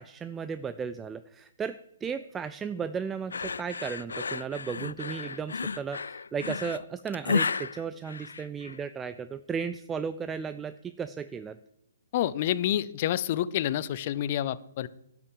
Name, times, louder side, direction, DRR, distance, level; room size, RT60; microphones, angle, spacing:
voice 1, 0.0-11.6, right 6 dB, 10° right, 12 dB, 0.3 m, -35 dB
sound 1, 3.3-8.8, left 5 dB, 85° left, 0.4 m, -33 dB
voice 2, 12.1-14.9, left 12 dB, 40° left, 17 dB, 0.6 m, -28 dB
10.5 x 6.0 x 8.5 m, 0.79 s
hypercardioid pair, 150°, 0 cm